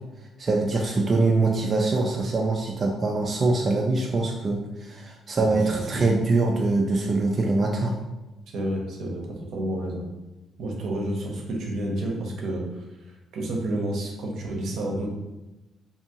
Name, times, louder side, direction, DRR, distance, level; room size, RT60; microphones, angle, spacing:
voice 1, 0.4-8.0, right 3 dB, 40° right, 0 dB, 0.3 m, -23 dB
voice 2, 8.5-9.2 9.5-10.0 10.6-12.8 13.3-15.1, right 1 dB, 75° right, 0 dB, 0.6 m, -29 dB
2.7 x 2.4 x 2.8 m, 1.0 s
cardioid pair, 90°, 0 cm